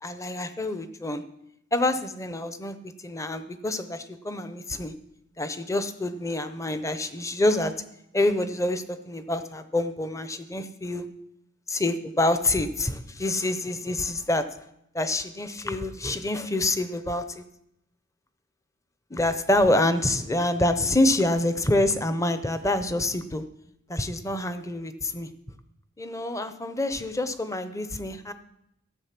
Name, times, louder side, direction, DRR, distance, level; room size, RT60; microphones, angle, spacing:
voice 1, 0.0-1.2 1.7-2.8 3.0-4.9 5.4-7.7 8.1-11.1 11.7-14.4 14.9-17.4 19.1-23.4 23.9-25.3 26.0-28.3, left 1 dB, 15° left, 11 dB, 0.7 m, -26 dB
13.5 x 7.9 x 5.9 m, 0.79 s
head